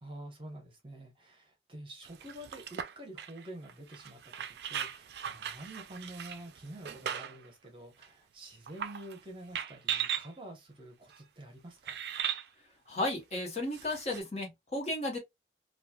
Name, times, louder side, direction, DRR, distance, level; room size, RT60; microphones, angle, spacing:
voice 1, 0.0-4.4 4.7-11.9, right 1 dB, 30° right, 1.0 m, -48 dB
sound 1, 2.0-7.5 8.0-8.1 8.7-9.2 9.5-10.3 11.1-11.2 11.8-12.4 13.7-14.2, right 9 dB, 70° right, 0.3 m, -38 dB
voice 2, 12.9-15.2, left 1 dB, 40° left, 1.1 m, -34 dB
3.2 x 2.4 x 2.3 m
head